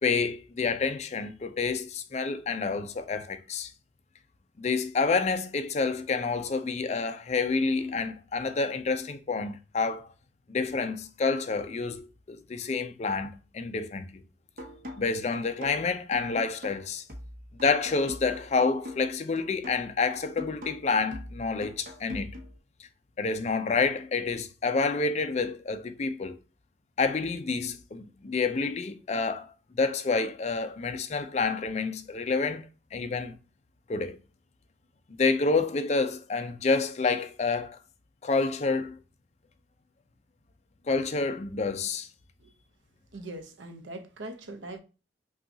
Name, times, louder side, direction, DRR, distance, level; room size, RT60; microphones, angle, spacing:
voice 1, 0.0-3.7 4.6-10.1 10.5-14.2 14.6-17.0 17.6-22.3 22.8-22.9 23.2-26.4 27.0-33.4 33.9-34.2 35.1-37.8 38.2-39.0 40.9-42.1, left 4 dB, 35° left, 0.4 m, -28 dB
sound 1, 14.6-22.6, left 1 dB, 45° right, 0.8 m, -43 dB
voice 2, 43.1-44.8, right 2 dB, 90° right, 0.7 m, -41 dB
5.5 x 2.3 x 2.7 m
head